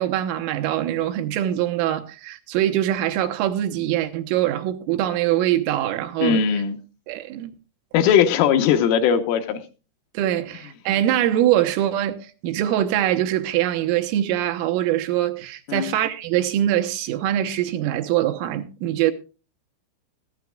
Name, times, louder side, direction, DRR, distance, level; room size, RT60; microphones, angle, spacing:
voice 1, 0.0-6.4 7.1-7.5 10.1-19.1, right 12 dB, 80° right, 3.5 m, -23 dB
voice 2, 6.2-6.8 7.9-9.6 15.7-15.9, left 8 dB, 75° left, 3.5 m, -19 dB
18.5 x 14.0 x 2.4 m
omnidirectional pair, 5.9 m